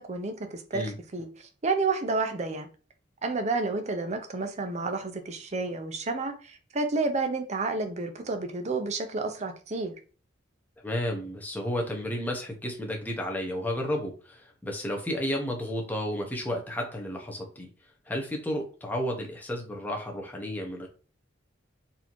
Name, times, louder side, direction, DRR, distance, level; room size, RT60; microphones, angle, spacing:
voice 1, 0.0-2.7 3.2-9.9, right 3 dB, 35° right, 6 dB, 0.6 m, -30 dB
voice 2, 10.8-17.7 18.1-20.9, left 1 dB, 10° left, 0 dB, 0.8 m, -32 dB
4.1 x 2.7 x 3.0 m, 0.37 s
head